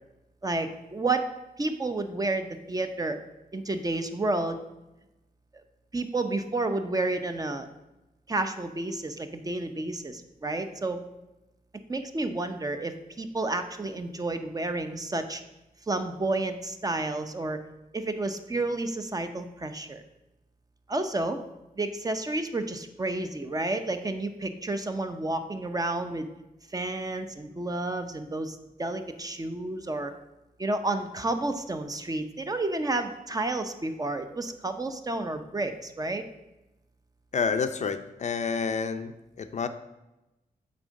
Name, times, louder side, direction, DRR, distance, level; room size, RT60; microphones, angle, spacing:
voice 1, 0.4-1.3 1.6-3.2 3.5-4.6 5.5-5.6 5.9-7.7 8.3-11.0 11.9-15.4 15.9-17.6 17.9-20.0 20.9-21.4 21.8-26.3 26.7-30.1 30.6-36.3, right 2 dB, 25° right, 7 dB, 0.6 m, -30 dB
voice 2, 37.3-39.1 39.4-39.7, left 5 dB, 50° left, 9 dB, 0.5 m, -28 dB
8.6 x 3.8 x 6.4 m, 0.96 s
wide cardioid pair, 120°, 16 cm